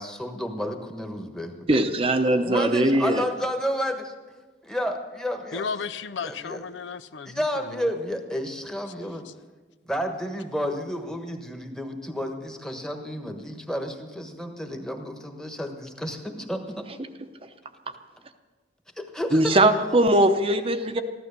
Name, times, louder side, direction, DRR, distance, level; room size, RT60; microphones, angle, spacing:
voice 1, 0.0-1.8 2.2-4.1 4.6-5.7 6.2-6.6 7.2-9.3 9.8-16.9 19.0-19.6, equal, 5° left, 4 dB, 1.2 m, -31 dB
voice 2, 1.7-3.2 19.3-21.0, right 1 dB, 30° right, 8 dB, 0.7 m, -20 dB
voice 3, 5.5-7.4 7.7-7.9, left 5 dB, 80° left, 14 dB, 0.5 m, -34 dB
14.5 x 12.0 x 6.8 m, 1.3 s
head